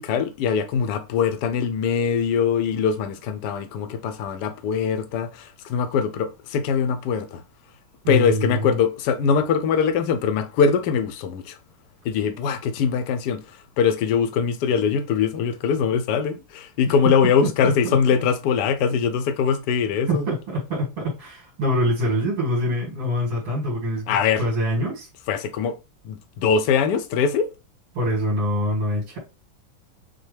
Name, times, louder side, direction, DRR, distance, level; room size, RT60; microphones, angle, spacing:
voice 1, 0.0-7.4 8.1-11.6 12.0-20.2 24.1-24.4 25.3-25.8 26.0-27.5, left 6 dB, 80° left, 0.9 m, -22 dB
voice 2, 8.0-8.8 17.6-18.0 20.1-25.1 27.9-29.2, equal, 80° right, 2.8 m, -25 dB
6.3 x 2.2 x 3.3 m
omnidirectional pair, 2.4 m